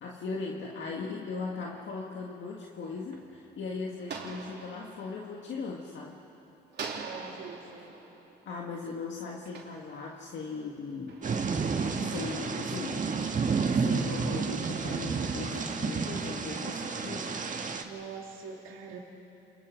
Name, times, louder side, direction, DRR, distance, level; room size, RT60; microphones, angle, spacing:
voice 1, 0.0-6.2 8.5-11.2 11.8-13.1 13.7-17.4, left 4 dB, 65° left, -1 dB, 2.0 m, -38 dB
sound 1, 2.6-6.3 6.7-10.5 11.1-13.7, right 4 dB, 60° right, 3.4 m, -46 dB
voice 2, 6.9-7.9 17.8-19.0, right 6 dB, 85° right, -1 dB, 2.5 m, -43 dB
Thunder / Rain, 11.2-17.8, right 5 dB, 40° right, 1.7 m, -31 dB
28.5 x 27.5 x 5.1 m, 2.9 s
cardioid pair, 90°, 20 cm